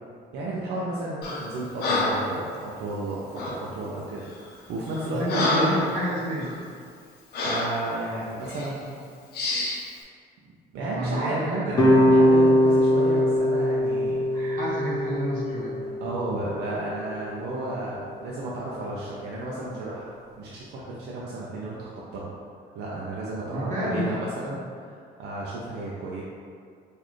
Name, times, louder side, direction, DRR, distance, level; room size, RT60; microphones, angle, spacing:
voice 1, 0.3-4.3 4.7-5.7 7.4-9.0 10.7-14.6 15.8-22.3 22.8-26.2, right 2 dB, 80° right, -5 dB, 0.6 m, -33 dB
Breathing, 1.2-1.5 1.8-2.3 3.3-3.6 4.3-4.5 4.9-5.9 6.4-6.6 7.3-7.7 8.5-8.7 9.3-9.8, left 2 dB, 70° left, 0.7 m, -27 dB
voice 2, 5.1-6.6 10.8-11.7 14.3-15.8 23.5-24.2, equal, 50° right, -8 dB, 1.0 m, -29 dB
sound 1, 11.7-16.9, equal, 20° left, 0.6 m, -21 dB
4.0 x 2.6 x 3.1 m, 2.2 s
cardioid pair, 110°, 17 cm